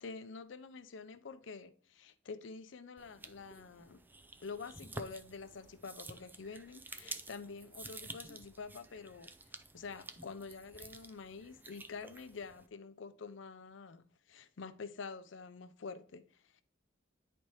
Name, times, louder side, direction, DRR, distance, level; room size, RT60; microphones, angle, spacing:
voice 1, 0.0-4.0 4.4-16.6, left 4 dB, 75° left, 0.5 m, -47 dB
sound 1, 3.0-12.7, right 2 dB, 10° right, 0.4 m, -51 dB
9.9 x 4.2 x 3.1 m
head